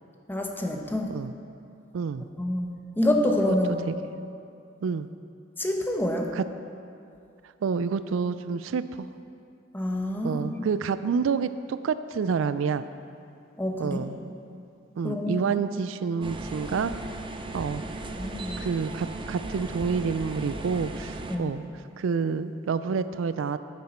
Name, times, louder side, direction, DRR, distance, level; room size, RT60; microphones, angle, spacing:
voice 1, 0.3-1.1 2.4-3.8 5.6-6.3 9.7-10.6 13.6-14.0 15.0-15.5 18.1-18.6 21.3-21.5, left 1 dB, 10° left, 2 dB, 0.9 m, -27 dB
voice 2, 1.9-2.3 3.9-4.0 4.8-5.1 6.4-6.5 7.6-9.1 10.2-12.9 13.8-14.2 15.0-16.9 17.5-17.8 18.6-21.6 22.0-23.6, right 5 dB, 90° right, 13 dB, 0.4 m, -28 dB
sound 1, 16.2-21.3, right 2 dB, 25° right, 0.6 m, -36 dB
11.0 x 9.6 x 4.3 m, 2.6 s
head